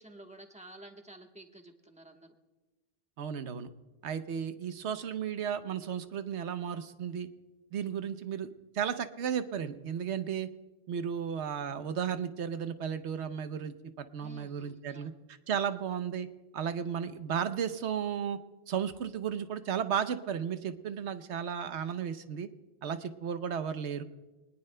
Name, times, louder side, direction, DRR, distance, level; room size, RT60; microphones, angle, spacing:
voice 1, 0.0-2.3 14.2-15.1 15.6-15.8, right 1 dB, 5° right, 3 dB, 1.1 m, -52 dB
voice 2, 3.2-3.7 4.0-7.3 7.7-10.5 10.9-16.3 16.5-18.4 18.7-22.5 22.8-24.0, right 8 dB, 90° right, 10 dB, 1.1 m, -34 dB
23.0 x 19.5 x 2.2 m, 1.2 s
omnidirectional pair, 1.1 m